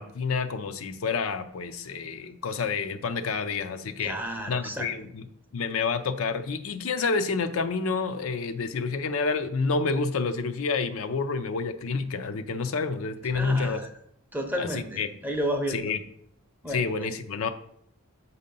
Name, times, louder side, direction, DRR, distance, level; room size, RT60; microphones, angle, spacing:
voice 1, 0.0-4.1 4.5-5.2 5.5-13.8 14.6-14.7 15.0-15.1 15.7-16.0 16.7-17.5, left 4 dB, 70° left, 9 dB, 0.5 m, -28 dB
voice 2, 4.0-4.9 13.3-13.9 14.3-15.9 16.6-17.1, equal, 10° right, 3 dB, 0.7 m, -32 dB
7.3 x 2.7 x 5.2 m, 0.66 s
head